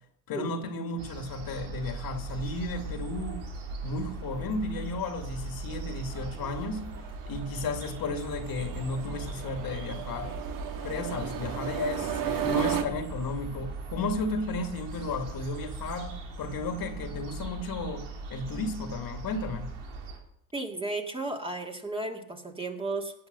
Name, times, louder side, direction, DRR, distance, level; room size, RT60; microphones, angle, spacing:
voice 1, 0.3-3.5 3.8-6.9 7.3-10.4 10.8-19.7, left 2 dB, 55° left, 2.2 m, -34 dB
sound 1, 1.0-20.2, right 3 dB, 75° right, 3.3 m, -39 dB
sound 2, 5.6-12.8, right 9 dB, 50° right, 1.8 m, -35 dB
voice 2, 20.5-23.1, right 2 dB, 10° right, 2.2 m, -34 dB
17.5 x 7.5 x 6.7 m
supercardioid pair, 80°, 43 cm